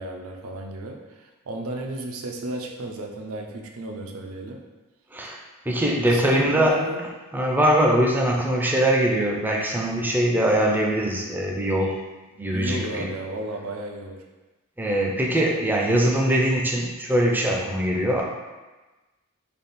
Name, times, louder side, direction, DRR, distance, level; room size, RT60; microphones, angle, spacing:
voice 1, 0.0-4.6 6.0-7.0 12.5-14.2, right 2 dB, 70° right, 1 dB, 0.5 m, -33 dB
voice 2, 5.7-6.8 7.3-12.0 12.4-13.1 14.8-18.2, right 1 dB, 10° right, -1 dB, 0.4 m, -22 dB
3.5 x 2.3 x 4.1 m, 1.2 s
head